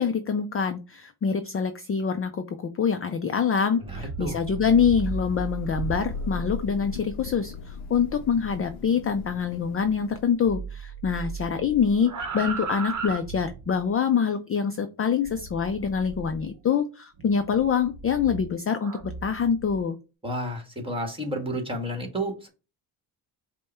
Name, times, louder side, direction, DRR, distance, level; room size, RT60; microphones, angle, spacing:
voice 1, 0.0-20.0, left 6 dB, 30° left, 8 dB, 0.4 m, -25 dB
sound 1, 3.7-10.2 10.4-13.9 15.3-16.5 17.2-19.8, right 4 dB, 40° right, 0.9 m, -37 dB
voice 2, 3.9-4.4 20.2-22.5, equal, 10° right, 3 dB, 1.5 m, -31 dB
Thunder / Rain, 4.8-10.5, left 4 dB, 75° left, 0.6 m, -39 dB
5.2 x 2.3 x 4.3 m, 0.31 s
cardioid pair, 110°, 48 cm